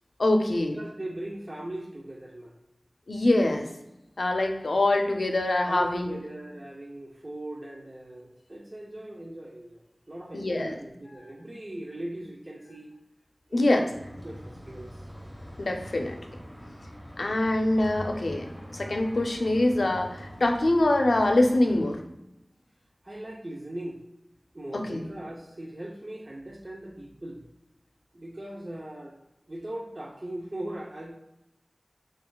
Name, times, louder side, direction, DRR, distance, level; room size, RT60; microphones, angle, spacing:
voice 1, 0.2-0.8 3.1-3.7 4.2-6.2 10.3-10.8 13.5-13.9 15.6-16.2 17.2-22.0 24.7-25.1, left 1 dB, 90° left, 3 dB, 0.5 m, -24 dB
voice 2, 0.7-2.5 5.7-12.9 13.5-13.9 14.2-15.0 23.0-24.0 24.5-27.4 28.1-29.1 29.5-31.1, right 1 dB, 40° right, -1 dB, 0.5 m, -39 dB
sound 1, 13.9-22.0, equal, 10° right, 1.0 m, -43 dB
6.0 x 2.3 x 2.2 m, 0.90 s
wide cardioid pair, 60°, 0 cm